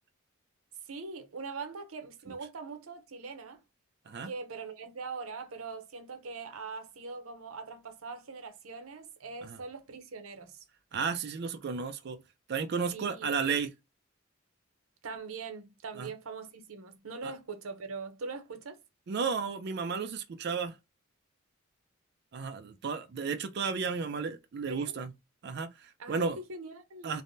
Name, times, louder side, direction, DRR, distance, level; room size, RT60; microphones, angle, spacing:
voice 1, 0.9-3.6 4.2-10.6 12.9-13.3 15.0-18.8 24.7-24.9 26.0-27.2, right 4 dB, 90° right, 0.7 m, -42 dB
voice 2, 10.9-12.2 12.5-13.7 16.0-16.1 17.2-17.3 19.1-20.8 22.3-25.1 25.4-26.4 27.0-27.2, right 5 dB, 50° right, 0.4 m, -33 dB
3.3 x 2.1 x 2.6 m
head